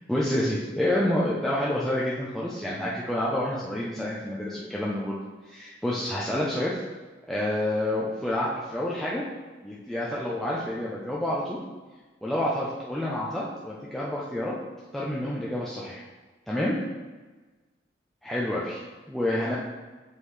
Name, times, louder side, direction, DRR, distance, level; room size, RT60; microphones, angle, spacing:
voice 1, 0.1-5.2 5.5-6.8 7.3-9.2 9.6-11.6 12.2-14.5 14.9-16.0 16.5-16.7 18.2-19.6, left 1 dB, ahead, -6 dB, 0.6 m, -28 dB
7.3 x 4.8 x 3.3 m, 1.3 s
head